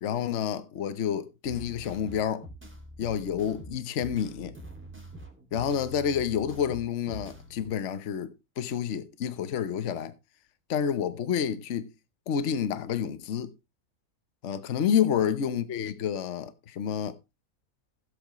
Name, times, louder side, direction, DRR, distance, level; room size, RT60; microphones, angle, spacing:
voice 1, 0.0-2.5 3.0-4.5 5.5-10.1 10.7-11.9 12.3-13.5 14.4-17.2, left 8 dB, 55° left, 1.1 m, -29 dB
sound 1, 1.4-7.7, right 1 dB, 10° right, 2.1 m, -45 dB
15.5 x 8.2 x 3.0 m
omnidirectional pair, 1.6 m